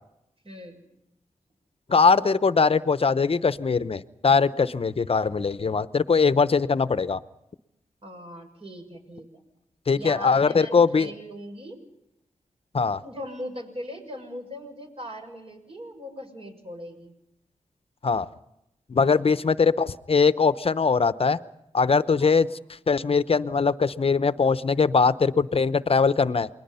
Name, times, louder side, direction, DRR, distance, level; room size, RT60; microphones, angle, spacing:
voice 1, 0.4-0.8 1.9-2.4 8.0-9.4 9.9-11.8 13.0-17.1 19.0-19.4 22.2-22.6, equal, 45° right, 3 dB, 6.4 m, -40 dB
voice 2, 1.9-7.2 9.9-11.1 12.7-13.0 18.0-18.3 18.9-21.4 21.7-22.5 22.9-26.5, left 5 dB, 45° left, 14 dB, 0.8 m, -21 dB
28.5 x 21.0 x 5.6 m, 0.83 s
cardioid pair, 60°, 13 cm